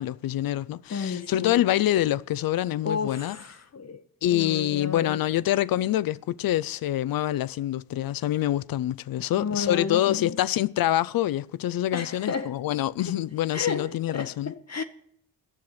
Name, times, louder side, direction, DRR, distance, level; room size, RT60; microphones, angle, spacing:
voice 1, 0.0-3.4 4.2-14.5, left 13 dB, 50° left, 0.5 m, -26 dB
voice 2, 0.9-1.6 2.8-4.0 4.3-5.2 9.4-10.4 11.9-12.6 13.0-13.2 13.5-14.8, left 5 dB, 35° left, 0.9 m, -32 dB
12.0 x 6.9 x 9.5 m
hypercardioid pair, 50°, 48 cm